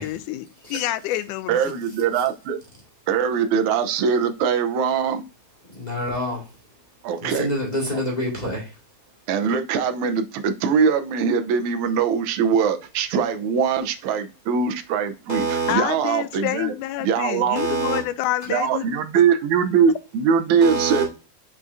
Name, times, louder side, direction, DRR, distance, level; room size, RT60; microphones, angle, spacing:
voice 1, 0.0-1.8 15.7-18.9, left 14 dB, 90° left, 2.1 m, -28 dB
voice 2, 1.5-2.6 3.1-5.2 7.0-7.5 7.9-8.0 9.3-16.7 17.0-17.6 18.5-21.0, right 6 dB, 75° right, 2.1 m, -22 dB
voice 3, 5.7-6.5 7.2-8.7 15.3-15.7 17.5-18.0 20.6-21.0, right 2 dB, 15° left, 1.8 m, -26 dB
6.2 x 5.9 x 2.6 m
omnidirectional pair, 3.5 m